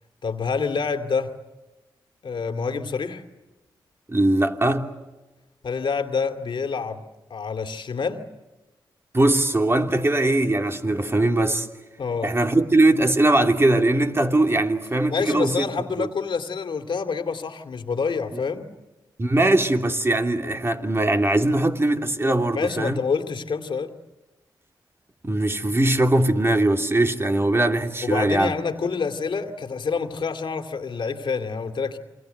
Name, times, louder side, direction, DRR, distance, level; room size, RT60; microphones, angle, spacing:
voice 1, 0.2-1.3 2.2-3.2 5.6-7.0 7.3-8.2 12.0-12.3 15.1-18.7 22.5-23.9 28.0-32.0, left 5 dB, 65° left, 2.4 m, -27 dB
voice 2, 4.1-4.9 9.1-11.7 12.2-15.7 16.0-16.1 19.2-23.0 25.2-28.5, right 2 dB, 30° right, 2.9 m, -21 dB
28.5 x 24.0 x 8.0 m
supercardioid pair, 45°, 9 cm